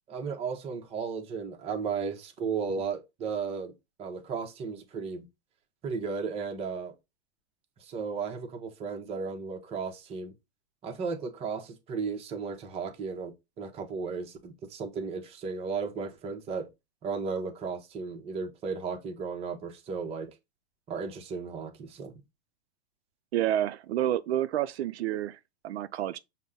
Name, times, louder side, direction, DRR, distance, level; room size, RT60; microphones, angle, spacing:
voice 1, 0.1-3.7 4.0-5.3 5.8-6.9 7.8-10.3 10.8-16.7 17.0-20.3 20.9-22.1, right 5 dB, 20° right, 0.6 m, -35 dB
voice 2, 23.3-26.2, right 12 dB, 85° right, 0.5 m, -29 dB
5.3 x 2.1 x 3.6 m
hypercardioid pair, 140°, 32 cm